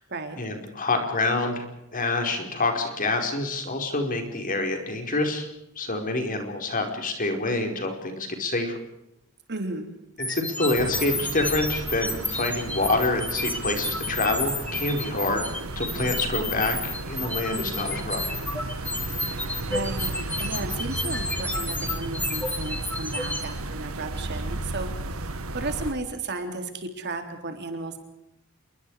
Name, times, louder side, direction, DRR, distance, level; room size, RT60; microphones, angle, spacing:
voice 1, 0.4-1.6 1.9-5.4 5.8-8.7 10.2-15.4 15.8-18.3, left 2 dB, 40° left, 4 dB, 4.9 m, -27 dB
voice 2, 9.5-9.9 19.3-20.1 20.4-24.9 25.5-28.0, right 2 dB, 55° right, 5 dB, 3.7 m, -34 dB
sound 1, 10.2-23.5, left 2 dB, 5° left, 2.5 m, -31 dB
sound 2, 10.7-25.9, right 2 dB, 80° right, 1.9 m, -34 dB
28.0 x 23.0 x 5.0 m, 0.83 s
head